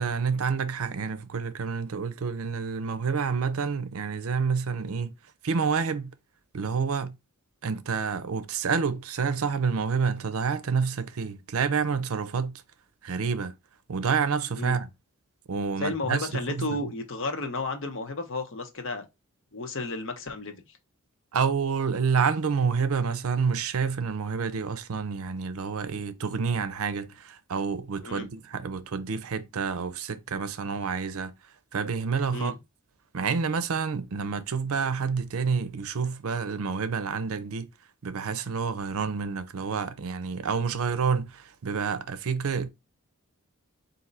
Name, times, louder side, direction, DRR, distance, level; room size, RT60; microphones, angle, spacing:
voice 1, 0.0-5.1 5.4-6.1 6.5-7.1 7.6-12.5 13.0-13.5 13.9-14.9 15.5-16.8 21.3-31.3 31.7-32.5 33.1-37.7 38.0-42.7, right 5 dB, 75° right, 0.5 m, -28 dB
voice 2, 15.8-19.1 19.5-20.5 28.0-28.3 32.3-32.5, left 2 dB, 60° left, 0.9 m, -32 dB
4.3 x 2.7 x 3.9 m
head